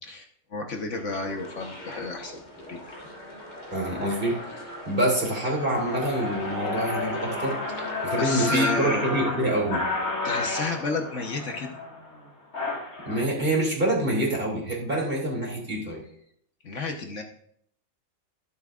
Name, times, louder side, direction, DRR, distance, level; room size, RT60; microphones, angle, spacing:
voice 1, 0.0-2.4 2.7-2.8 7.9-9.0 10.2-11.7 16.6-17.2, left 3 dB, 60° left, 3 dB, 1.5 m, -32 dB
sound 1, 1.0-1.2 1.8-2.1 2.5-3.0 3.4-3.5 3.8-13.2, left 2 dB, 85° left, 2.9 m, -32 dB
sound 2, 1.1-8.5, left 1 dB, 30° left, 1.6 m, -43 dB
voice 2, 3.7-7.6 8.0-9.9 13.0-16.0, right 1 dB, 40° right, -2 dB, 3.1 m, -26 dB
23.0 x 8.1 x 2.5 m, 0.69 s
omnidirectional pair, 1.5 m